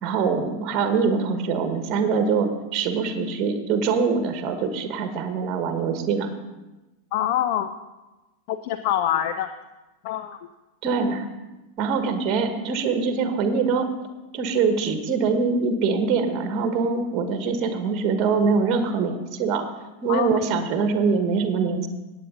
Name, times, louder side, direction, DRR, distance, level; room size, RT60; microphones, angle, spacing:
voice 1, 0.0-6.3 10.8-11.2 11.8-13.9 14.3-19.6 20.0-21.9, right 5 dB, 35° right, 7 dB, 1.4 m, -23 dB
voice 2, 7.1-7.7 8.5-9.5 10.0-10.4 20.1-20.3, left 11 dB, 45° left, 11 dB, 0.5 m, -25 dB
17.5 x 8.9 x 3.8 m, 1.1 s
figure-of-eight pair, 90°, 0 cm